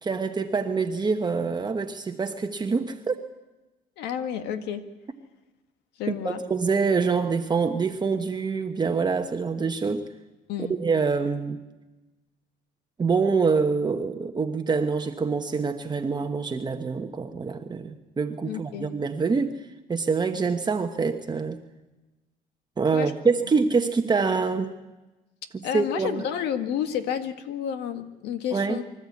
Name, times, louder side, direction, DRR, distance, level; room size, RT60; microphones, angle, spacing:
voice 1, 0.0-3.2 6.1-10.1 10.8-11.6 13.0-19.5 19.9-21.6 22.8-24.7 25.7-26.2 28.5-28.8, right 4 dB, 25° right, 5 dB, 1.2 m, -25 dB
voice 2, 4.0-4.9 6.0-6.4 10.5-10.7 18.4-18.9 22.9-23.1 25.6-28.8, left 9 dB, 85° left, 8 dB, 1.8 m, -30 dB
25.0 x 13.5 x 8.5 m, 1.1 s
cardioid pair, 110°, 17 cm